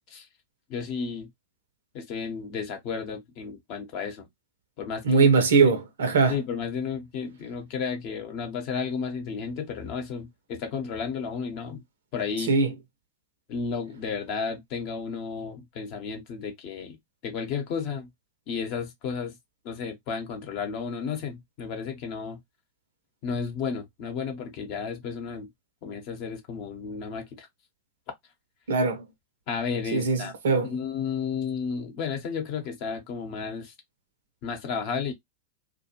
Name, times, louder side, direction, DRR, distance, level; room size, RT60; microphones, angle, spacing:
voice 1, 0.7-1.3 1.9-4.3 4.8-5.3 5.6-5.7 6.3-11.8 12.1-12.5 13.5-17.0 17.2-18.1 18.5-19.4 19.6-22.4 23.2-25.5 25.8-27.5 29.5-30.4 30.6-33.7 34.4-35.1, left 6 dB, 45° left, 0.8 m, -32 dB
voice 2, 5.0-6.4 12.5-12.7 28.7-29.0 29.9-30.7, right 4 dB, 65° right, 0.6 m, -21 dB
2.3 x 2.2 x 2.8 m
figure-of-eight pair, 90°, 0 cm